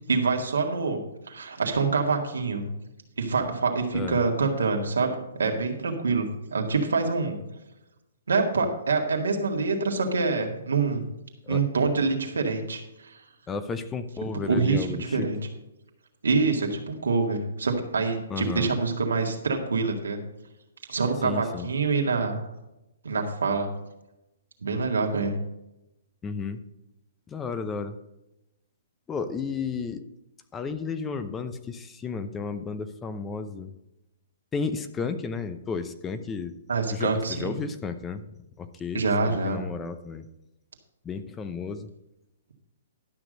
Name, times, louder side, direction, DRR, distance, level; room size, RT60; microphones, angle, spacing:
voice 1, 0.1-1.0 1.3-2.6 3.2-7.4 8.3-11.0 11.5-13.2 14.5-15.4 16.2-20.2 20.9-22.4 23.0-23.7 24.6-25.3 36.7-37.5 38.9-39.6, right 4 dB, 85° right, 2 dB, 2.0 m, -26 dB
voice 2, 13.5-15.3 18.3-18.7 21.2-21.7 26.2-26.6 27.3-28.0 29.1-30.1 30.5-33.7 34.5-36.5 36.9-38.2 38.6-40.3 41.0-41.9, left 5 dB, 15° left, 10 dB, 0.6 m, -33 dB
12.0 x 6.1 x 5.1 m, 0.92 s
hypercardioid pair, 140°, 0 cm